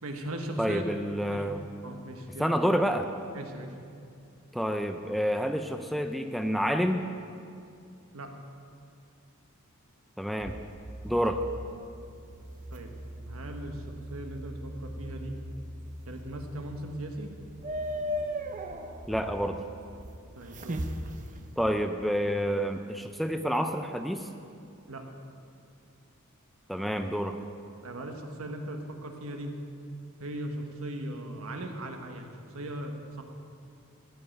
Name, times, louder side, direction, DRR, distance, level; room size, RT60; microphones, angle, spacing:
voice 1, 0.0-0.8 1.3-1.4 1.8-2.5 3.3-3.7 8.1-8.3 12.7-12.9 13.2-15.3 16.1-17.3 20.4-20.8 24.9-25.0 27.8-29.5 30.2-33.2, right 1 dB, 75° right, 4 dB, 1.3 m, -38 dB
voice 2, 0.6-1.6 2.4-3.1 4.5-7.1 10.2-10.6 11.0-11.4 19.1-19.6 21.6-24.3 26.7-27.4, equal, ahead, 6 dB, 0.4 m, -28 dB
sound 1, 10.4-21.7, equal, 35° right, 0.8 m, -39 dB
14.0 x 5.5 x 9.2 m, 2.5 s
head